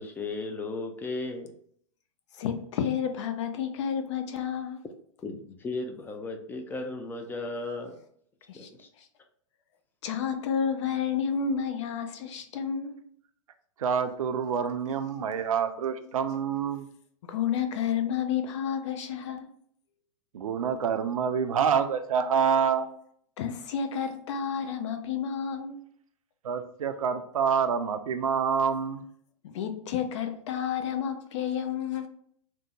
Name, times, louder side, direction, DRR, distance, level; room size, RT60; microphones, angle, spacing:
voice 1, 0.0-1.5 5.2-8.0 8.5-8.9, left 3 dB, 10° left, 0.3 m, -35 dB
voice 2, 2.4-4.8 8.5-8.7 10.0-13.0 17.2-19.5 23.4-25.8 29.4-32.1, left 7 dB, 55° left, 0.6 m, -30 dB
voice 3, 13.8-16.9 20.3-22.9 26.4-29.0, right 7 dB, 75° right, 0.5 m, -27 dB
3.4 x 2.0 x 3.0 m
hypercardioid pair, 110°, 18 cm